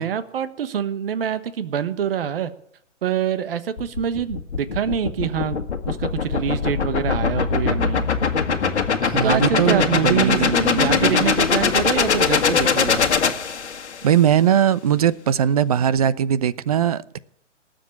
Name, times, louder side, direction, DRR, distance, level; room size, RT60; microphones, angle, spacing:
voice 1, 0.0-2.5 3.0-5.6 5.8-8.0 9.2-13.1, right 8 dB, 50° right, 1.3 m, -25 dB
sound 1, 3.8-14.1, left 6 dB, 65° left, 1.6 m, -21 dB
voice 2, 9.0-11.3 14.0-17.2, right 9 dB, 30° right, 0.5 m, -20 dB
19.0 x 7.6 x 8.9 m
figure-of-eight pair, 135°, 37 cm